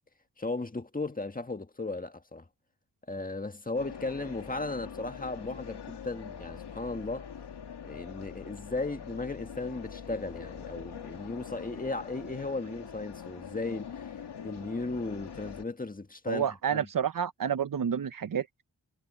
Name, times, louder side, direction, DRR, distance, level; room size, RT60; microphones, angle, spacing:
voice 1, 0.4-2.5 3.1-7.3 7.8-14.1 14.4-16.9, left 3 dB, 20° left, 1.7 m, -36 dB
sound 1, 3.7-15.6, left 7 dB, 75° left, 2.1 m, -43 dB
voice 2, 16.3-18.7, right 8 dB, 55° right, 0.8 m, -30 dB
wide cardioid pair, 80°, 40 cm